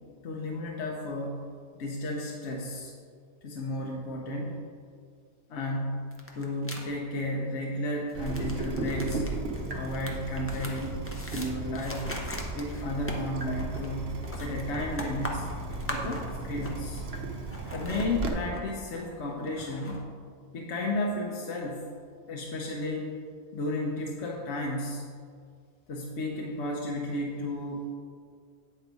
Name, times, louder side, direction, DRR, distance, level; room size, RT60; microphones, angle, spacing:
voice 1, 0.2-2.9 3.4-4.6 5.5-9.3 9.6-11.0 11.3-12.2 12.6-15.5 15.9-17.0 17.7-20.1 20.5-21.8 22.3-23.1 23.5-25.1 25.9-27.9, left 1 dB, 75° left, -1 dB, 1.0 m, -33 dB
sound 1, 6.1-6.8 8.1-17.1 17.4-20.0, left 1 dB, 15° left, 0.5 m, -41 dB
Water tap faucet / Drip, 8.1-18.3, right 2 dB, 65° right, 1.0 m, -36 dB
8.8 x 3.9 x 4.7 m, 2.1 s
omnidirectional pair, 1.2 m